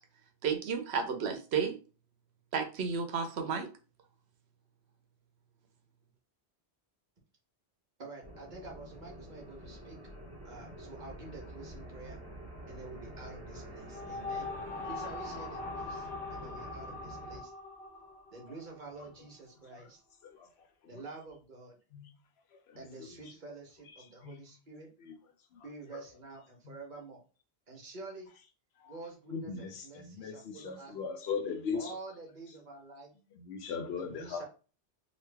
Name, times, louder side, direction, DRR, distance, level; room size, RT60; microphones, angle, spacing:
voice 1, 0.4-1.8 2.5-3.7, right 6 dB, 70° right, 0.8 m, -32 dB
voice 2, 8.0-10.0 10.4-12.2 12.7-14.5 14.8-17.5 18.3-20.0 20.9-21.8 22.8-24.9 25.6-27.2 27.7-28.3 28.8-30.9 31.7-33.1 34.0-34.4, right 3 dB, 45° right, 1.1 m, -48 dB
sound 1, 8.2-17.4, right 1 dB, 10° right, 1.2 m, -47 dB
sound 2, 13.6-19.0, left 3 dB, 55° left, 1.1 m, -42 dB
voice 3, 22.7-23.1 24.2-24.4 25.0-25.2 25.5-25.6 25.9-26.0 26.7-26.8 28.8-28.9 29.3-31.9 33.4-34.4, left 5 dB, 70° left, 0.8 m, -39 dB
3.0 x 2.5 x 3.3 m
omnidirectional pair, 1.1 m